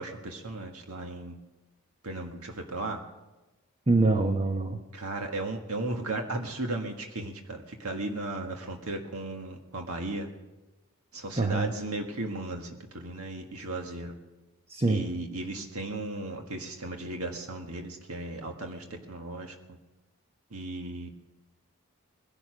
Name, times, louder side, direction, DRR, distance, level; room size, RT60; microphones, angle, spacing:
voice 1, 0.0-1.4 2.0-3.0 4.9-10.3 11.1-14.1 14.9-19.8 20.5-21.1, right 2 dB, 90° right, 3 dB, 1.7 m, -36 dB
voice 2, 3.9-4.8 11.3-11.7 14.7-15.1, right 3 dB, 30° right, 4 dB, 0.9 m, -25 dB
20.0 x 11.0 x 6.3 m, 1.1 s
head